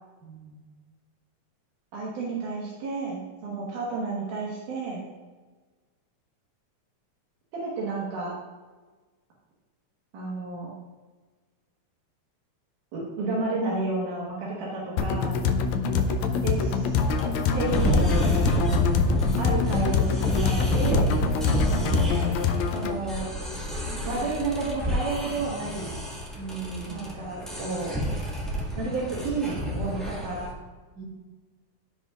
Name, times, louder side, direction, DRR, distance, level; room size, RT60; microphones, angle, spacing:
voice 1, 0.2-0.6 15.5-16.0 16.3-16.6 21.3-22.2 26.4-27.0 31.0-31.1, right 4 dB, 70° right, -5 dB, 3.4 m, -38 dB
voice 2, 1.9-5.0 7.5-8.3 10.1-10.7 12.9-15.3 16.4-17.0 17.5-18.1 19.4-21.1 22.7-23.3 24.0-25.9 26.9-28.0 28.8-30.5, right 3 dB, 85° right, -5 dB, 2.9 m, -31 dB
sound 1, 15.0-23.0, left 5 dB, 75° left, 1.9 m, -25 dB
sound 2, 15.9-30.5, equal, ahead, 0.4 m, -28 dB
14.0 x 5.5 x 2.4 m, 1.3 s
omnidirectional pair, 3.5 m